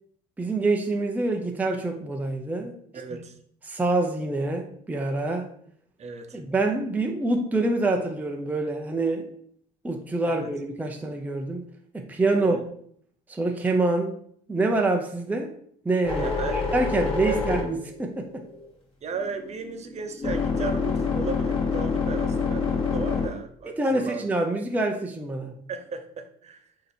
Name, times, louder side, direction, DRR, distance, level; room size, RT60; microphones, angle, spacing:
voice 1, 0.4-2.8 3.1-3.2 3.6-5.5 6.3-9.3 9.8-11.6 11.9-12.6 13.3-14.2 14.5-15.5 15.8-18.4 23.8-25.5, right 2 dB, 10° right, 3 dB, 0.6 m, -26 dB
voice 2, 2.9-3.3 6.0-6.4 10.2-10.5 12.4-12.6 16.2-16.7 17.3-17.4 19.0-24.3 25.7-26.6, right 5 dB, 40° right, 6 dB, 0.9 m, -35 dB
sound 1, 16.0-18.7 19.1-23.3, left 5 dB, 35° left, 2.4 m, -27 dB
8.0 x 2.9 x 4.3 m, 0.64 s
cardioid pair, 110°, 17 cm